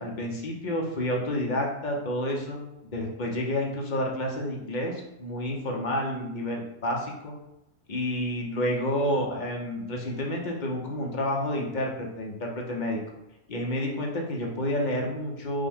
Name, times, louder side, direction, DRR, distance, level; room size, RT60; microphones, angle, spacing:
voice 1, 0.0-7.3 7.9-13.0 13.5-15.7, left 1 dB, 45° left, 0 dB, 0.7 m, -29 dB
5.3 x 2.1 x 3.5 m, 0.87 s
omnidirectional pair, 1.3 m